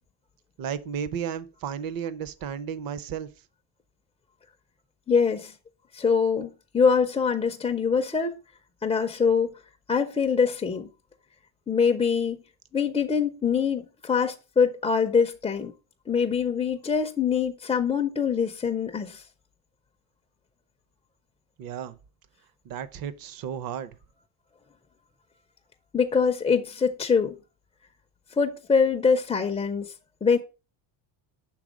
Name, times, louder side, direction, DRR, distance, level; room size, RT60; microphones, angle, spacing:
voice 1, 0.6-3.3 21.6-22.0 22.6-24.0, right 8 dB, 45° right, 0.7 m, -33 dB
voice 2, 5.1-5.5 5.9-8.4 8.8-9.5 9.9-10.9 11.7-12.4 12.7-15.7 16.1-19.2 25.9-27.4 28.4-29.9 30.2-30.4, left 6 dB, 15° left, 0.3 m, -24 dB
6.2 x 3.5 x 5.0 m
cardioid pair, 135°, 47 cm